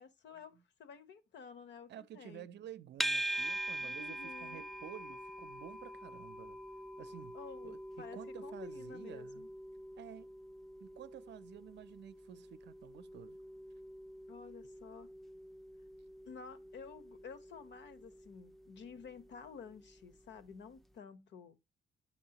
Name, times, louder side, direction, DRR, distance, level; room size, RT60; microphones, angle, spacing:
voice 1, 0.0-0.5 0.8-2.5 3.8-4.7 7.3-9.5 14.3-15.1 16.3-21.6, left 6 dB, 65° left, 1.0 m, -52 dB
voice 2, 1.9-6.6 7.0-7.4 7.6-9.5 10.0-10.3 10.8-13.4, right 11 dB, 60° right, 0.5 m, -52 dB
sound 1, 3.0-20.2, right 1 dB, ahead, 0.4 m, -44 dB
8.3 x 5.6 x 2.9 m
cardioid pair, 90°, 20 cm